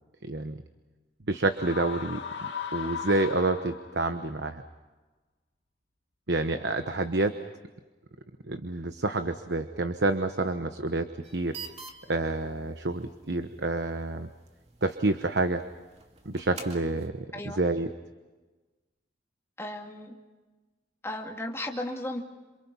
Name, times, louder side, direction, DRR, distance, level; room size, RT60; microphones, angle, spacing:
voice 1, 0.2-0.6 1.3-4.6 6.3-7.3 8.5-11.1 11.3-11.6 12.1-14.3 14.8-15.6 16.2-17.9, right 2 dB, 65° right, 8 dB, 1.1 m, -28 dB
sound 1, 1.5-4.1, left 7 dB, 75° left, 2.4 m, -37 dB
sound 2, 11.2-17.1, right 5 dB, 35° right, 2.4 m, -48 dB
voice 2, 19.6-20.2 21.0-22.2, left 1 dB, 15° left, 1 dB, 2.5 m, -35 dB
27.5 x 27.5 x 5.6 m, 1.2 s
head